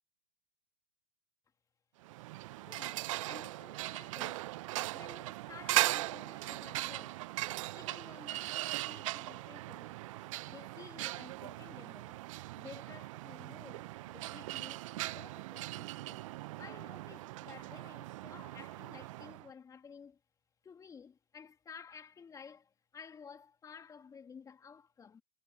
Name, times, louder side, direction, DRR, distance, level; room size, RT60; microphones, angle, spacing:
sound 1, 2.0-19.5, right 18 dB, 55° right, 0.8 m, -39 dB
voice 1, 2.6-4.5 4.9-7.3 7.7-9.9 10.5-12.2 12.6-16.2 16.6-20.2 20.6-25.2, left 6 dB, 15° left, 2.8 m, -54 dB
hypercardioid pair, 120°, 20 cm